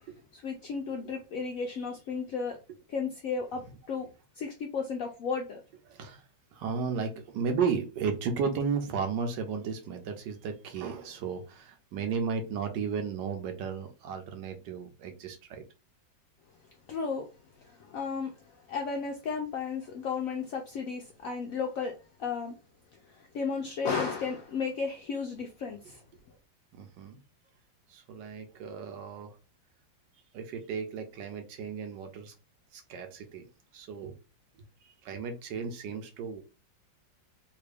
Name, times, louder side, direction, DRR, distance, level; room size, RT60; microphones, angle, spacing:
voice 1, 0.0-2.6 2.9-4.1 4.4-5.6 16.9-17.3 17.6-21.9 22.2-22.5 23.1-26.0, left 5 dB, 70° left, 0.8 m, -34 dB
voice 2, 5.9-6.2 6.5-15.6 26.8-27.2 27.9-29.4 30.3-32.3 32.7-33.4 33.7-34.1 35.0-36.4, right 6 dB, 75° right, 1.3 m, -34 dB
3.5 x 2.5 x 3.3 m
omnidirectional pair, 2.0 m